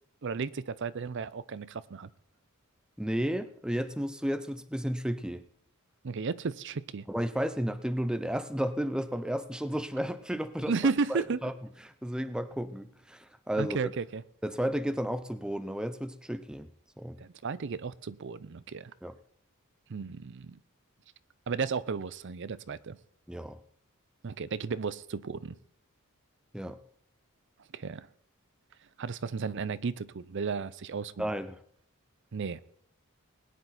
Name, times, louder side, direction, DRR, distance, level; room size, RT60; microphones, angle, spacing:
voice 1, 0.2-2.1 6.0-7.1 10.7-11.4 13.6-14.2 17.2-18.9 19.9-20.6 21.5-23.0 24.2-25.6 27.7-28.1 29.0-31.3 32.3-32.6, right 5 dB, 55° right, 0.5 m, -34 dB
voice 2, 3.0-5.4 7.1-10.7 11.1-11.5 11.8-13.9 14.4-16.7 17.0-17.2 19.0-19.2 23.3-23.6 26.5-26.8 31.2-31.6, equal, 5° right, 0.6 m, -33 dB
20.5 x 10.0 x 4.1 m
head